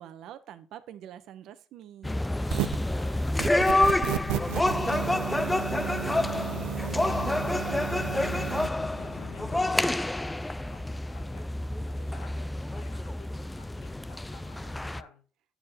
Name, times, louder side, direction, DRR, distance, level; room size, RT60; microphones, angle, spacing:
voice 1, 0.0-2.2, right 10 dB, 70° right, 11 dB, 1.0 m, -45 dB
sound 1, 2.0-15.0, left 1 dB, 10° left, 0.4 m, -28 dB
sound 2, 2.4-2.9 3.4-8.7, right 16 dB, 90° right, 0.5 m, -33 dB
voice 2, 2.9-7.3 7.7-11.5 11.9-15.2, left 4 dB, 85° left, 0 dB, 4.2 m, -54 dB
sound 3, 3.8-9.8, left 8 dB, 60° left, 1.0 m, -43 dB
9.4 x 4.7 x 4.5 m, 0.36 s
cardioid pair, 115°, 0 cm